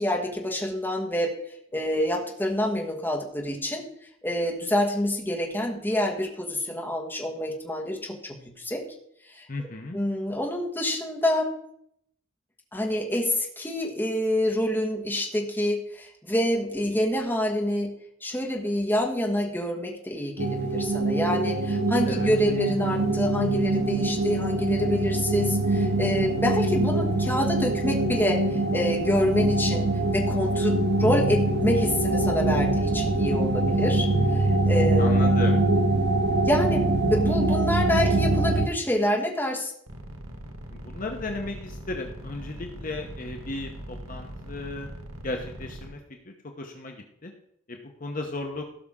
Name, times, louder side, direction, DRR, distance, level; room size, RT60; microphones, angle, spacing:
voice 1, 0.0-1.3 1.7-3.8 4.2-8.8 9.3-9.5 9.9-11.6 12.7-17.9 18.2-29.9 30.1-34.1 34.3-35.4 36.4-39.7, left 1 dB, 10° left, -2 dB, 1.5 m, -27 dB
voice 2, 9.5-10.0 22.0-22.3 35.0-35.6 40.7-44.9 45.2-47.3 47.7-48.6, left 2 dB, 40° left, 3 dB, 0.9 m, -35 dB
sound 1, 20.4-38.7, right 2 dB, 50° right, 0.8 m, -24 dB
sound 2, 39.9-45.9, equal, 85° right, 1.3 m, -40 dB
16.5 x 5.9 x 3.7 m, 0.72 s
head